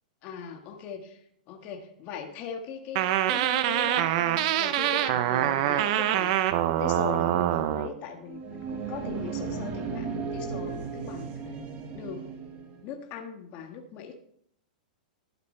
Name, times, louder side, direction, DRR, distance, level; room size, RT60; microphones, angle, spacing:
voice 1, 0.2-6.3 6.8-11.6 11.9-12.3 12.8-14.2, left 6 dB, 40° left, 3 dB, 1.8 m, -40 dB
sound 1, 3.0-7.9, right 12 dB, 55° right, 0.9 m, -25 dB
sound 2, 8.2-12.8, right 5 dB, 35° right, 1.9 m, -35 dB
12.5 x 11.0 x 3.4 m, 0.69 s
hypercardioid pair, 135°, 4 cm